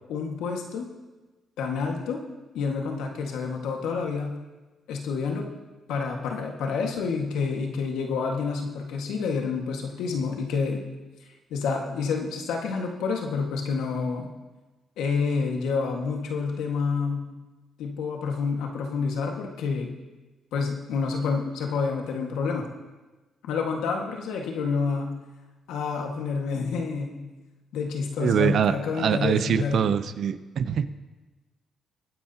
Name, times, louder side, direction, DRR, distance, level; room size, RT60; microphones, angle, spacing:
voice 1, 0.1-0.9 1.6-2.2 2.5-4.3 4.9-5.5 5.9-10.8 11.5-14.3 15.0-17.3 17.8-20.0 20.5-22.7 23.5-25.1 25.7-27.2 27.7-29.9, left 5 dB, 85° left, 2 dB, 1.7 m, -28 dB
voice 2, 28.2-30.9, right 7 dB, 65° right, 12 dB, 0.7 m, -24 dB
23.0 x 9.5 x 2.9 m, 1.2 s
cardioid pair, 90°, 0 cm